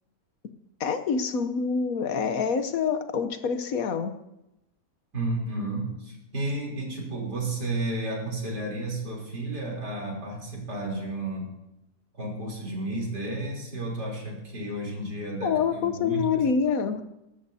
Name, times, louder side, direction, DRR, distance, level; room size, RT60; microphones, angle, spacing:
voice 1, 0.8-4.1 15.4-17.0, left 6 dB, 65° left, 9 dB, 1.2 m, -26 dB
voice 2, 5.1-11.5 12.2-16.4, right 2 dB, 85° right, -2 dB, 4.1 m, -32 dB
20.0 x 12.5 x 2.8 m, 0.91 s
omnidirectional pair, 1.7 m